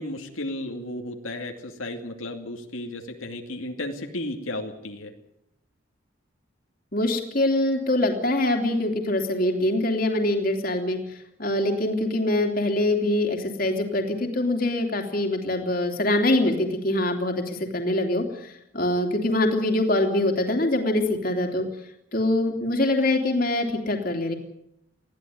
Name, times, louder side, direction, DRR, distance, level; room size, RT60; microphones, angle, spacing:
voice 1, 0.0-5.1, left 1 dB, 90° left, 3 dB, 2.5 m, -34 dB
voice 2, 6.9-11.0 11.4-21.6 22.1-24.3, left 1 dB, 45° left, 3 dB, 3.1 m, -24 dB
21.0 x 15.0 x 9.5 m, 0.81 s
head